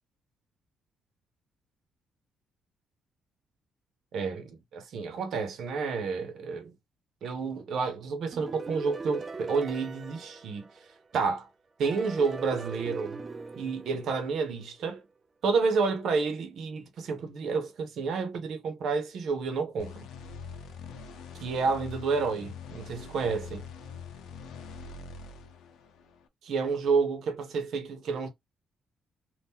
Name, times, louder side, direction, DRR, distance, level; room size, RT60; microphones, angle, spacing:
voice 1, 4.1-6.7 7.2-10.7 11.1-11.5 11.8-13.2 13.5-15.0 15.4-20.0 21.4-23.7 26.4-28.3, right 4 dB, 70° right, 1.0 m, -30 dB
sound 1, 8.3-11.2 11.8-14.7, right 4 dB, 30° right, 0.5 m, -41 dB
sound 2, 19.8-26.3, left 5 dB, 85° left, 0.6 m, -44 dB
3.7 x 2.5 x 2.8 m
cardioid pair, 90°, 0 cm